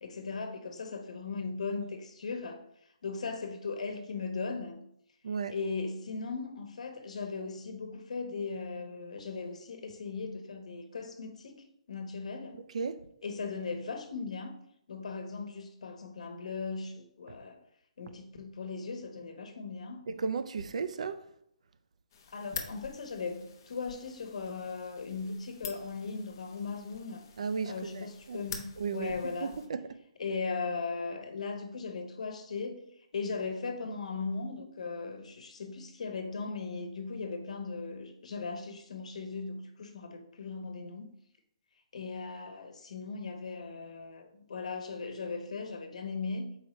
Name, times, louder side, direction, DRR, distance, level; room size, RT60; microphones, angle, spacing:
voice 1, 0.0-2.6 3.0-4.8 5.5-12.6 13.2-14.5 14.9-17.6 18.0-20.0 22.3-27.2 27.7-29.6 30.2-32.9 33.1-41.1 41.9-46.6, left 4 dB, 80° left, 1.1 m, -38 dB
voice 2, 12.5-13.1 20.1-21.2 27.4-28.4 28.8-30.0, right 5 dB, 75° right, 0.5 m, -35 dB
sound 1, 22.1-29.7, left 7 dB, 35° left, 0.7 m, -47 dB
6.5 x 4.8 x 3.1 m
hypercardioid pair, 175°, 4 cm